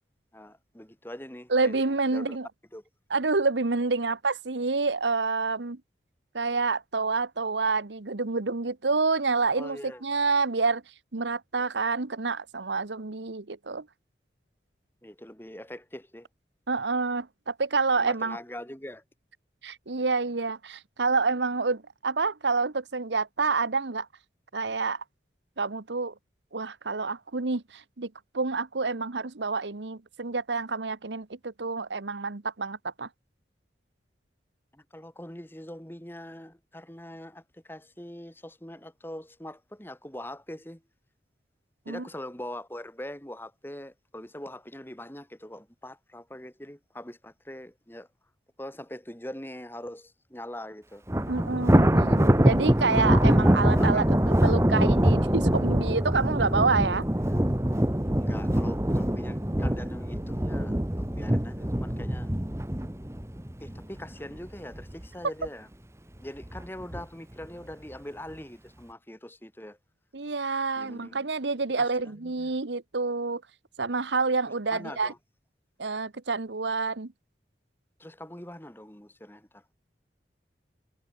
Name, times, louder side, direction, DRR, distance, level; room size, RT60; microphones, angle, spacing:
voice 1, 0.3-2.4 2.7-2.8 9.5-10.0 15.0-16.3 18.0-19.0 34.7-40.8 41.9-48.1 48.6-51.0 51.5-51.9 52.9-53.1 53.8-54.5 57.3-57.4 58.2-62.3 63.6-65.7 66.2-69.8 70.8-71.3 71.8-72.5 74.7-75.2 78.0-79.6, left 1 dB, 10° left, 2.1 m, -42 dB
voice 2, 1.5-2.5 3.1-5.8 6.3-10.8 11.1-13.9 16.7-18.4 19.6-24.1 24.5-25.0 25.6-26.1 26.5-33.1 41.9-42.1 51.3-57.0 70.1-73.4 73.8-75.1 75.8-77.1, right 4 dB, 85° right, 1.1 m, -28 dB
Thunder, 51.1-64.4 64.8-65.1 65.4-65.5 66.4-67.0, equal, 15° right, 1.2 m, -24 dB
head